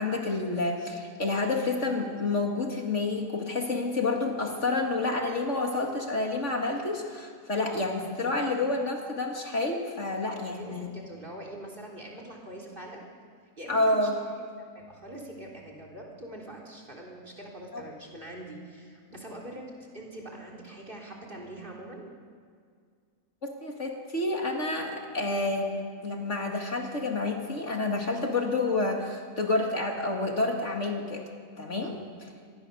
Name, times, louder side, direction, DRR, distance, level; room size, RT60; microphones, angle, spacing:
voice 1, 0.0-10.9 13.7-14.2 17.7-17.8 23.4-31.2 31.6-32.3, left 2 dB, 45° left, 2 dB, 2.4 m, -29 dB
voice 2, 10.4-13.0 13.6-14.3 14.7-22.1 31.9-32.2, right 1 dB, 30° right, 0 dB, 4.0 m, -43 dB
26.0 x 19.5 x 6.9 m, 2.1 s
omnidirectional pair, 1.7 m